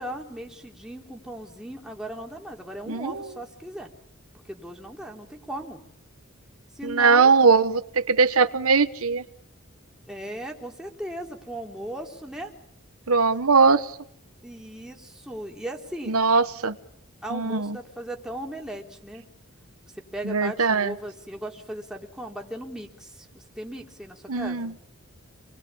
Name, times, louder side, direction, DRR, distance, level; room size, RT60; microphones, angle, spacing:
voice 1, 0.0-3.9 4.4-5.8 6.7-7.3 10.1-12.5 14.4-16.2 17.2-19.2 19.9-24.8, right 1 dB, 5° right, 0 dB, 3.7 m, -37 dB
voice 2, 6.8-9.2 13.1-13.9 16.1-16.7 17.3-17.8 20.2-20.9 24.3-24.7, right 4 dB, 80° right, 11 dB, 1.2 m, -20 dB
28.5 x 21.5 x 8.6 m, 0.71 s
head